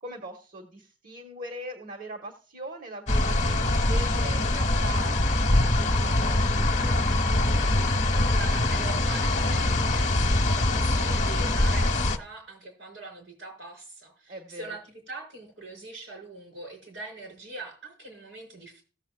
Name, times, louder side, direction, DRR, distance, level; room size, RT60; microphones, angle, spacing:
voice 1, 0.0-7.1 14.3-14.8, right 1 dB, 45° right, 3 dB, 1.2 m, -41 dB
sound 1, 3.1-12.2, left 2 dB, 40° left, 0.9 m, -23 dB
voice 2, 8.3-18.8, right 3 dB, 90° right, 3 dB, 5.0 m, -42 dB
17.0 x 7.3 x 2.3 m, 0.37 s
head